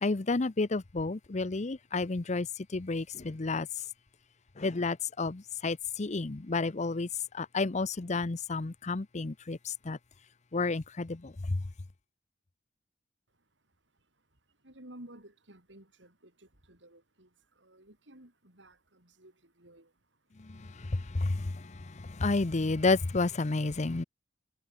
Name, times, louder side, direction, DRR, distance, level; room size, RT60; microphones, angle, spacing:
voice 1, 0.0-2.5 2.7-3.7 4.6-7.1 7.3-10.0 10.5-11.6 21.1-21.5 22.2-24.0, left 3 dB, 40° left, 0.7 m, -30 dB
voice 2, 13.3-20.6, right 1 dB, 75° right, 6.5 m, -55 dB
head